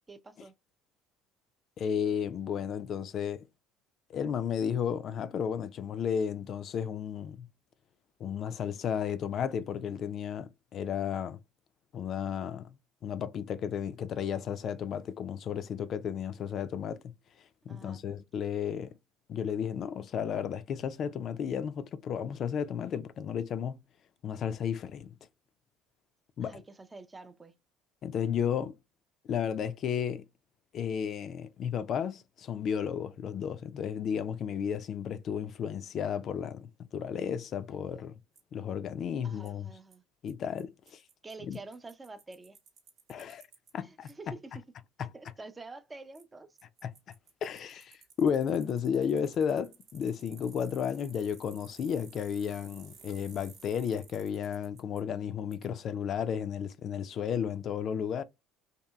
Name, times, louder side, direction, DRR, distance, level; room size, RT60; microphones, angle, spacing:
voice 1, 0.1-0.5 17.7-18.0 26.4-27.5 37.9-38.0 39.2-40.0 41.2-42.6 43.8-44.6 45.0-46.6, right 3 dB, 20° right, 0.4 m, -48 dB
voice 2, 1.8-3.5 4.1-7.5 8.2-11.4 11.9-12.7 13.0-17.1 17.7-18.9 19.3-23.8 24.2-25.1 26.4-26.6 28.0-28.7 29.2-30.2 30.7-38.1 38.5-39.7 40.2-41.0 41.5-41.6 43.1-43.4 43.7-44.1 45.0-45.1 46.8-47.1 47.4-58.2, left 8 dB, 50° left, 0.3 m, -33 dB
Bicycle, 38.4-38.5 39.5-39.6 39.9-40.0 40.3-40.4 40.6-40.7 40.9-43.7 44.1-44.2 46.1-46.2 46.6-55.0 55.5-55.7, right 6 dB, 60° right, 0.8 m, -56 dB
2.7 x 2.7 x 2.2 m
hypercardioid pair, 65°, 0 cm